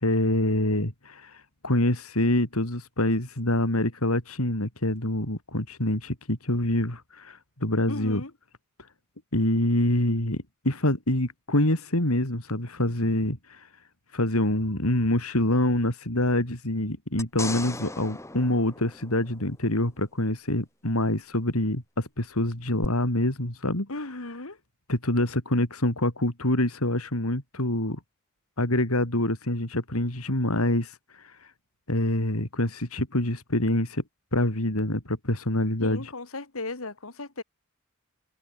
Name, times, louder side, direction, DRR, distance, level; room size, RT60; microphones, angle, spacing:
voice 1, 0.0-8.2 9.3-13.7 14.1-24.3 24.9-28.0 28.6-31.2 31.9-34.0 34.3-36.1, left 1 dB, 90° left, 4.8 m, -26 dB
voice 2, 7.9-8.3 23.9-24.6 35.8-37.4, left 2 dB, 75° left, 2.3 m, -36 dB
sound 1, 17.2-19.7 22.8-22.9, left 2 dB, 15° left, 2.3 m, -37 dB
head